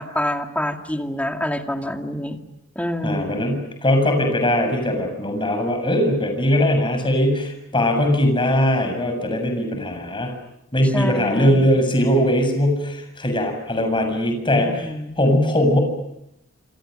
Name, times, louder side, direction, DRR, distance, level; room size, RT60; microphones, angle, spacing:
voice 1, 0.0-2.4 2.8-3.4 10.9-11.8 14.5-15.2, left 1 dB, 5° left, 4 dB, 2.3 m, -27 dB
voice 2, 3.0-10.3 10.7-15.8, left 1 dB, 25° left, 5 dB, 7.0 m, -20 dB
27.5 x 26.5 x 6.6 m, 0.82 s
head